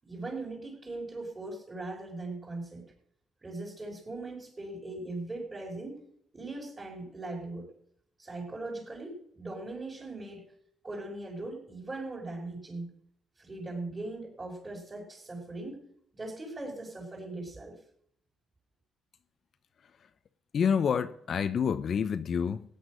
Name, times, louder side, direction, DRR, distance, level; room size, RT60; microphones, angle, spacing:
voice 1, 0.0-2.8 3.4-6.0 6.3-7.7 8.2-10.4 10.8-12.9 13.4-15.9 16.1-17.8, right 2 dB, 25° right, 5.9 m, -39 dB
voice 2, 20.5-22.6, left 7 dB, 55° left, 0.8 m, -28 dB
16.0 x 10.5 x 6.5 m
cardioid pair, 90°, 0 cm